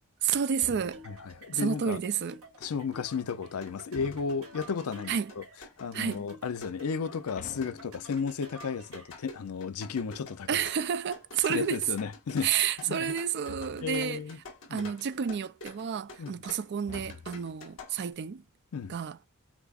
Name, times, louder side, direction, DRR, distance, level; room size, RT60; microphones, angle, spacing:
voice 1, 0.2-1.0 1.5-2.4 5.1-5.3 5.9-6.2 10.5-11.8 12.4-14.2 14.7-18.4 18.9-19.2, right 7 dB, 50° right, 0.4 m, -30 dB
sound 1, 0.6-1.4 3.9-4.7 7.3-8.5 13.5-14.1 16.8-17.7, left 5 dB, 35° left, 0.3 m, -48 dB
sound 2, 0.9-9.3, equal, 75° right, 1.3 m, -51 dB
voice 2, 1.1-2.0 2.6-5.4 5.8-10.6 11.5-12.5 12.8-13.1 13.8-14.4 14.7-14.9 16.2-16.4 18.7-18.9, left 5 dB, 85° left, 0.5 m, -34 dB
sound 3, 2.3-2.4 2.6-18.1, left 1 dB, 65° left, 2.2 m, -47 dB
5.9 x 2.0 x 2.3 m
head